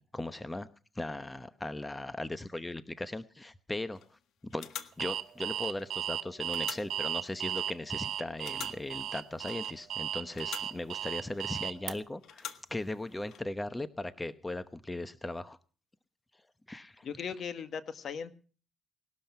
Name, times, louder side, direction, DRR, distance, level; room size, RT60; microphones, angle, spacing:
voice 1, 0.0-4.0 4.4-15.6 16.7-17.1, left 2 dB, 15° left, 13 dB, 0.9 m, -38 dB
sound 1, 4.0-4.2 4.5-6.1 6.4-8.0 8.4-10.0 10.2-11.8 12.2-13.4, left 9 dB, 80° left, 1.6 m, -47 dB
Alarm, 5.0-11.9, right 11 dB, 70° right, 0.9 m, -35 dB
voice 2, 17.0-18.5, left 7 dB, 60° left, 11 dB, 1.6 m, -38 dB
19.5 x 12.5 x 5.8 m, 0.40 s
cardioid pair, 90°, 0 cm